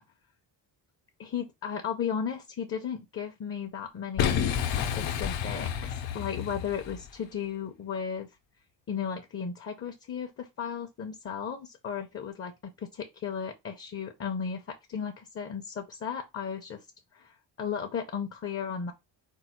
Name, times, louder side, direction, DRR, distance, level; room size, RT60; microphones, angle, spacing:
voice 1, 1.2-8.3 8.9-12.5 12.8-16.9 17.1-18.9, left 7 dB, 30° left, 0.5 m, -35 dB
Boom, 4.2-7.2, left 8 dB, 80° left, 0.8 m, -30 dB
4.5 x 2.3 x 4.3 m
cardioid pair, 165°, 45 cm